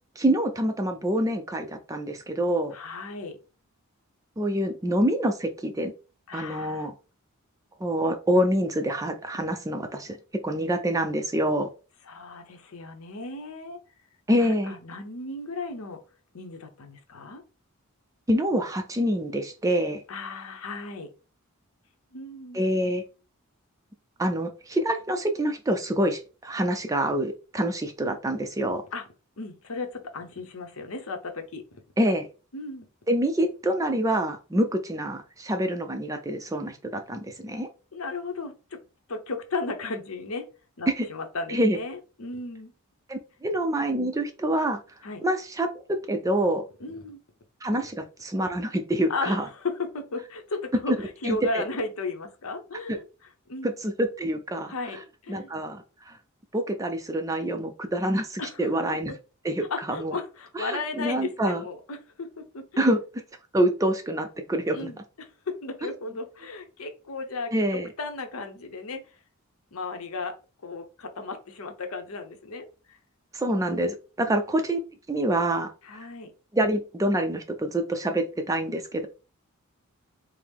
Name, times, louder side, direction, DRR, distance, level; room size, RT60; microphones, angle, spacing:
voice 1, 0.2-2.7 4.4-5.9 6.3-6.9 7.8-10.2 10.4-11.7 14.3-14.7 18.3-20.0 22.5-23.0 24.2-28.8 32.0-32.3 33.1-37.7 41.0-41.1 41.5-41.8 43.1-44.8 45.2-46.6 47.6-49.5 51.2-51.6 52.9-53.0 53.6-54.7 55.3-56.2 56.5-59.1 59.4-60.1 60.6-61.6 62.8-63.0 63.5-64.9 65.8-65.9 67.5-67.9 73.3-74.8 75.1-76.1 76.5-79.1, right 1 dB, 15° right, 6 dB, 0.4 m, -26 dB
voice 2, 2.7-3.4 6.3-6.9 12.1-13.8 14.4-16.0 16.3-17.4 20.1-21.1 22.1-22.6 28.9-29.1 29.4-31.6 32.5-32.9 37.9-38.8 39.1-40.5 40.8-42.7 45.0-45.2 46.8-47.2 49.1-53.1 53.5-53.8 54.7-55.5 58.4-58.7 59.1-59.2 59.7-62.9 64.7-69.0 69.7-70.4 70.6-73.0 74.3-74.4 75.8-76.3, left 3 dB, 75° left, 6 dB, 0.8 m, -35 dB
4.6 x 2.0 x 3.5 m, 0.33 s
head